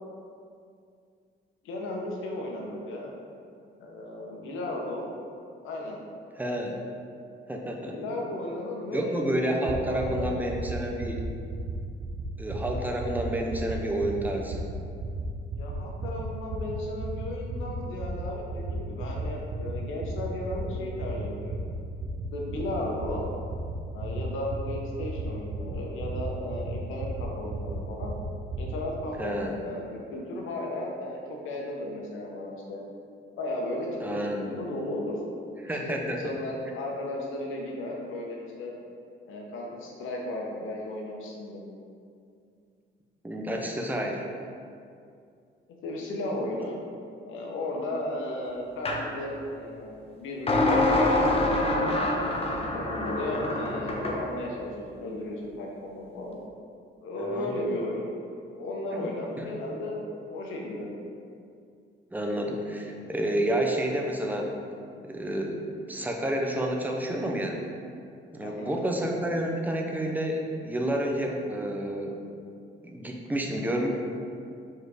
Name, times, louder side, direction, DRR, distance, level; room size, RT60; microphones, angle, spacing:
voice 1, 1.6-3.1 3.8-5.1 5.6-6.0 7.9-10.3 15.5-21.5 22.3-23.3 23.9-28.1 28.6-31.2 31.4-32.8 33.4-35.2 35.6-38.7 39.3-41.6 45.8-46.8 47.2-50.8 51.7-52.1 52.5-56.4 57.0-58.1 58.5-61.0 68.4-68.8, left 1 dB, 85° left, -1 dB, 1.2 m, -35 dB
voice 2, 6.4-6.8 7.5-8.0 8.9-11.3 12.4-14.6 29.2-29.6 34.0-34.6 35.6-36.3 43.2-44.3 57.2-57.5 59.0-59.1 59.4-59.5 62.1-64.5 65.0-65.6 65.9-67.6 68.3-72.2 72.8-73.9, right 1 dB, 10° right, 0 dB, 0.8 m, -29 dB
sound 1, 9.7-9.8 10.0-10.2 10.5-10.7 11.0-11.2 11.5-11.7 12.0-12.2 12.5-12.7 13.0-13.2 13.5-13.7 14.0-14.2 14.5-14.7 15.0-15.2 15.5-15.7 16.0-16.2 16.5-16.7 17.0-17.2 17.5-17.7 18.0-18.2 18.5-18.7 19.0-19.2 19.5-19.7 20.0-20.2 20.5-20.7 21.0-21.2 21.5-21.7 22.0-22.2 22.5-22.7 23.0-23.2 23.5-23.7 24.0-24.2 24.5-24.7 25.0-25.2 25.5-25.7 26.0-26.2 26.5-26.7 27.0-27.2 27.5-27.7 28.0-28.2 28.5-28.7, right 6 dB, 55° right, 0.9 m, -34 dB
sound 2, 48.8-49.0 50.5-54.2, left 2 dB, 30° left, 0.9 m, -25 dB
4.8 x 4.3 x 5.0 m, 2.4 s
cardioid pair, 90°, 20 cm